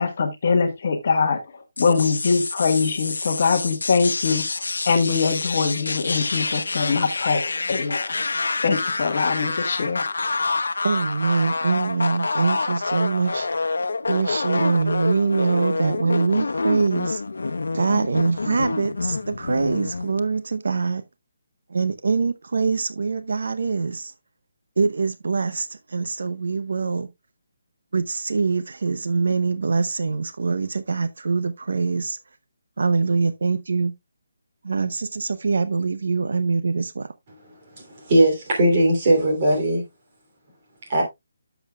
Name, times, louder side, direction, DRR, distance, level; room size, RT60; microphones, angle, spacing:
voice 1, 0.0-1.4 1.8-8.1 8.6-10.1, left 5 dB, 40° left, 1.3 m, -22 dB
sound 1, 1.8-20.2, left 3 dB, 85° left, 0.9 m, -27 dB
voice 2, 10.8-13.7 14.1-17.2 17.7-21.0 21.7-24.1 24.8-27.1 27.9-32.2 32.8-33.9 34.6-37.1, right 4 dB, 60° right, 0.7 m, -24 dB
voice 3, 38.0-39.8 40.9-41.0, right 1 dB, 25° right, 2.9 m, -18 dB
11.0 x 7.1 x 2.3 m
hypercardioid pair, 175°, 0 cm